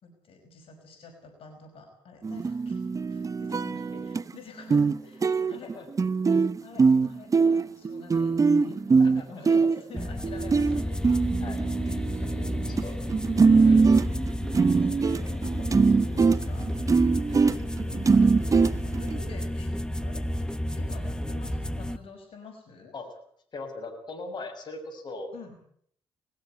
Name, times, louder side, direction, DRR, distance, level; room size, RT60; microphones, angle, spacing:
voice 1, 0.0-2.8 3.1-5.7 6.6-11.3 12.5-13.1 13.4-19.7 20.0-22.9 25.3-25.6, left 4 dB, 75° left, 3 dB, 5.5 m, -48 dB
sound 1, 2.2-4.3 4.7-5.0 5.2-12.8 13.1-19.2, right 4 dB, 35° right, 1.0 m, -22 dB
voice 2, 5.4-5.9 9.0-9.7 11.4-12.1 12.4-12.9 13.6-13.9 15.6-15.7 17.3-18.0 22.9-23.1 23.5-25.3, left 3 dB, 50° left, 3 dB, 6.5 m, -41 dB
sound 2, 10.0-22.0, equal, 10° left, 1.3 m, -31 dB
20.5 x 15.5 x 9.0 m, 0.64 s
cardioid pair, 90°, 10 cm